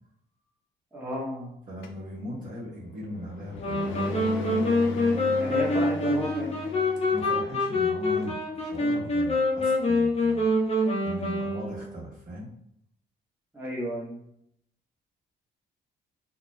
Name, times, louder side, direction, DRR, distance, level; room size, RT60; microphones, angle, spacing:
voice 1, 0.9-1.5 5.4-6.5 13.5-14.2, equal, 10° right, -6 dB, 1.0 m, -32 dB
voice 2, 1.7-4.4 7.1-10.5 11.0-12.5, equal, 40° right, -6 dB, 1.1 m, -39 dB
sound 1, 1.8-7.4, left 3 dB, 75° left, 0.4 m, -37 dB
sound 2, 3.6-12.0, left 2 dB, 30° left, 0.7 m, -26 dB
2.5 x 2.1 x 3.1 m, 0.73 s
cardioid pair, 90°, 20 cm